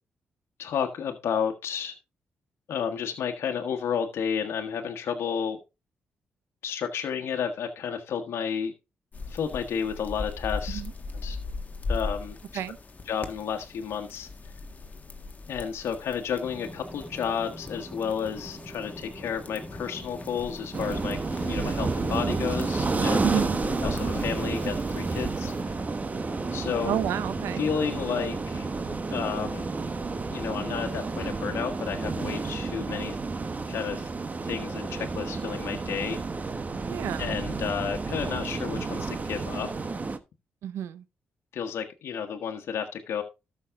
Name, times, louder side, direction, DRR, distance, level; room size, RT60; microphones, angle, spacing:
voice 1, 0.6-2.0 2.7-5.6 6.6-8.7 9.3-10.8 11.2-11.4 11.9-12.6 13.0-14.3 15.5-23.3 23.8-25.8 26.5-27.0 27.6-28.7 29.1-29.7 30.3-33.2 33.7-34.1 34.4-36.2 37.2-39.9 41.5-43.2, left 7 dB, 75° left, 1.4 m, -31 dB
sound 1, 9.1-25.6, left 3 dB, 35° left, 1.7 m, -39 dB
sound 2, 16.4-31.9, equal, ahead, 4.4 m, -43 dB
sound 3, 20.7-40.2, right 3 dB, 35° right, 1.2 m, -31 dB
voice 2, 23.2-23.6 26.9-27.6 36.9-37.4 40.6-41.0, right 10 dB, 85° right, 0.7 m, -30 dB
13.0 x 6.4 x 3.7 m
cardioid pair, 60°, 4 cm